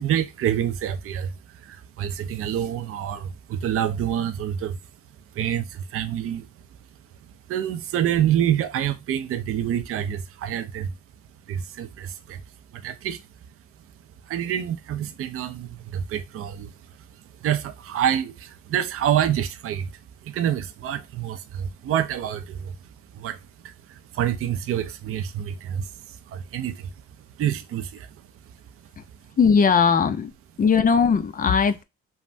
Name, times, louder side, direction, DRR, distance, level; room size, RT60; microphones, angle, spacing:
voice 1, 0.0-4.8 5.3-6.5 7.5-10.9 11.5-12.4 12.7-13.2 14.2-19.9 20.2-22.8 23.1-26.9 27.4-28.2, right 10 dB, 50° right, 0.4 m, -27 dB
voice 2, 29.4-30.3 30.6-31.8, left 6 dB, 30° left, 0.4 m, -19 dB
3.2 x 2.0 x 2.5 m
cardioid pair, 90°, 30 cm